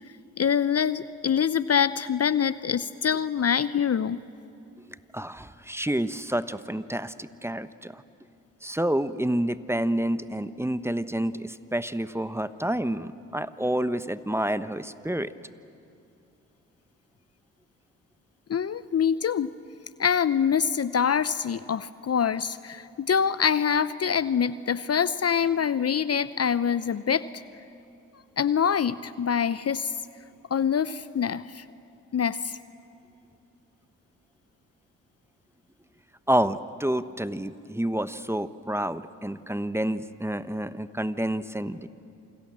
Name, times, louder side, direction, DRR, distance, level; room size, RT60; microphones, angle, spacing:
voice 1, 0.4-4.2 18.5-19.5 20.0-27.4 28.4-29.9 30.5-31.6 32.1-32.5, left 7 dB, 40° left, 16 dB, 0.8 m, -25 dB
voice 2, 5.1-8.0 8.6-15.3 36.3-41.9, right 1 dB, 5° right, 13 dB, 1.1 m, -29 dB
27.5 x 25.5 x 7.5 m, 2.6 s
hypercardioid pair, 40°, 37 cm